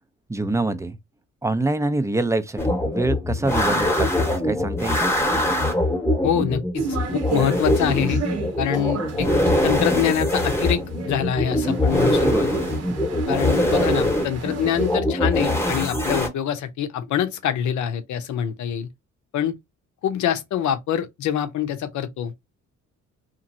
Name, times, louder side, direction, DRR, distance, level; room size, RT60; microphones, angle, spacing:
voice 1, 0.3-1.0 1.4-5.1 12.2-12.6 12.9-13.0, right 2 dB, 10° right, 0.4 m, -25 dB
sound 1, 2.6-16.3, left 1 dB, 10° left, 1.0 m, -23 dB
voice 2, 6.2-6.9 7.1-8.2 8.6-10.8 11.1-12.5 13.3-18.9 19.3-19.5 20.0-22.3, left 9 dB, 70° left, 0.7 m, -25 dB
sound 2, 6.7-15.0, right 5 dB, 60° right, 0.8 m, -34 dB
2.9 x 2.5 x 2.5 m
cardioid pair, 90°, 30 cm